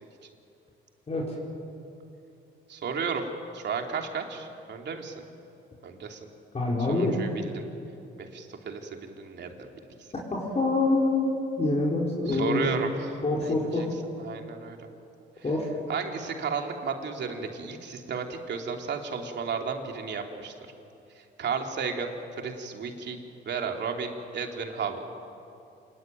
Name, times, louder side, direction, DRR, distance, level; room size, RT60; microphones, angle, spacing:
voice 1, 1.1-1.4 6.5-7.2 10.3-12.7 13.2-13.9 15.4-15.7, left 2 dB, 30° left, -4 dB, 4.8 m, -26 dB
voice 2, 2.7-3.2 3.5-5.2 5.8-6.2 6.9-7.6 8.2-9.7 12.3-13.9 14.2-14.8 15.9-20.5 21.4-23.2 23.4-25.0, right 5 dB, 60° right, 3 dB, 3.1 m, -33 dB
27.0 x 20.5 x 9.3 m, 2.7 s
cardioid pair, 90°, 20 cm